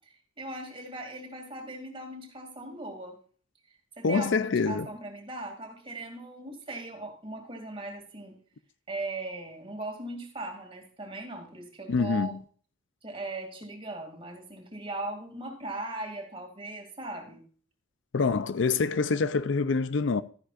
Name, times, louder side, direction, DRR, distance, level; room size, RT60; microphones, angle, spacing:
voice 1, 0.1-3.2 4.0-8.4 8.9-12.4 13.0-17.4, right 2 dB, 25° right, 2.5 m, -39 dB
voice 2, 4.0-4.9 11.9-12.4 18.1-20.2, left 4 dB, 65° left, 0.5 m, -26 dB
13.0 x 9.8 x 2.5 m
head